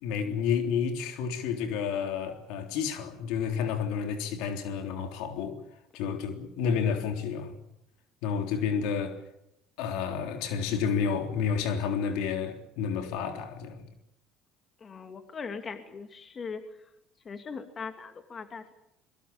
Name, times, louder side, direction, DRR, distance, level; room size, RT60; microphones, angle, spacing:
voice 1, 0.0-5.6 5.9-7.5 8.2-9.2 9.8-13.8, left 7 dB, 75° left, 3.5 m, -30 dB
voice 2, 14.8-16.6 17.2-18.7, left 5 dB, 35° left, 2.4 m, -40 dB
23.0 x 22.5 x 7.2 m
supercardioid pair, 105°, 0 cm